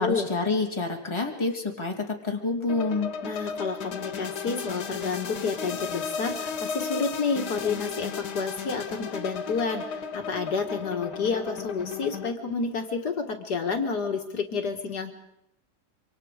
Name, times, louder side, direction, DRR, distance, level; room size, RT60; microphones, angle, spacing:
voice 1, 0.0-3.1, left 3 dB, 15° left, 2 dB, 2.5 m, -28 dB
sound 1, 2.7-12.3, left 6 dB, 90° left, 2.0 m, -35 dB
voice 2, 3.2-15.1, left 5 dB, 75° left, 4 dB, 2.3 m, -30 dB
26.0 x 24.5 x 5.0 m, 0.82 s
omnidirectional pair, 1.8 m